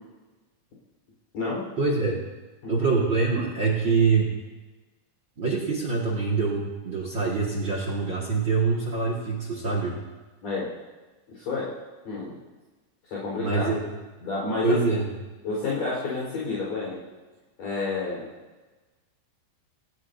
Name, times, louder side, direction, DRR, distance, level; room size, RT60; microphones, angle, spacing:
voice 1, 1.8-2.2 2.7-4.3 5.4-9.9 13.4-13.8 14.6-15.1, right 4 dB, 55° right, -2 dB, 1.2 m, -24 dB
voice 2, 10.4-10.7 11.3-11.7 12.0-12.4 13.0-13.7 14.2-14.8 15.4-17.0 17.6-18.3, left 3 dB, 45° left, -6 dB, 5.8 m, -29 dB
27.5 x 17.5 x 2.8 m, 1.2 s
omnidirectional pair, 5.5 m